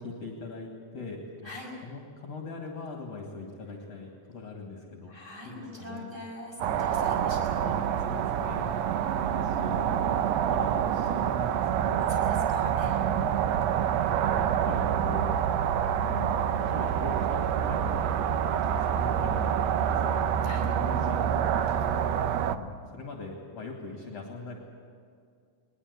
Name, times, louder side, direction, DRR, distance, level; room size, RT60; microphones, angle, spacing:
voice 1, 0.0-1.5 1.8-5.2 5.4-6.2 6.7-6.8 7.6-12.1 12.8-13.5 14.1-15.4 16.0-18.1 18.5-19.6 19.9-20.5 20.8-21.7 22.5-24.6, left 3 dB, 50° left, 1 dB, 2.9 m, -41 dB
voice 2, 5.1-7.7 8.9-9.1 12.1-13.0 20.4-20.7, left 1 dB, 15° right, -2 dB, 5.9 m, -43 dB
sound 1, 6.6-22.6, right 9 dB, 80° right, 1.5 m, -27 dB
21.0 x 20.5 x 8.2 m, 2.3 s
omnidirectional pair, 4.0 m